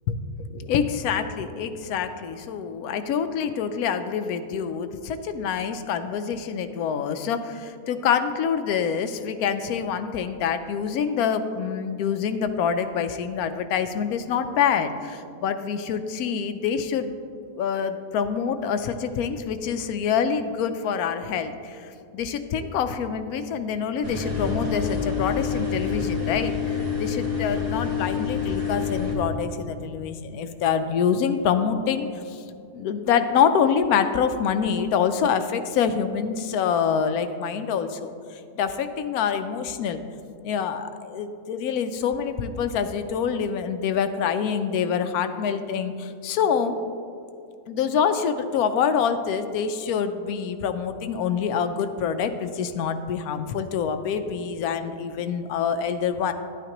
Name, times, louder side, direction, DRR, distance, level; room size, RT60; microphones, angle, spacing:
voice 1, 0.5-17.2 17.6-32.4 32.7-38.1 38.6-40.0 40.4-46.8 47.7-56.3, left 7 dB, 70° left, 9 dB, 1.0 m, -26 dB
sound 1, 24.0-29.1, left 6 dB, 85° right, 2.3 m, -27 dB
11.0 x 9.1 x 3.0 m, 2.4 s
omnidirectional pair, 1.7 m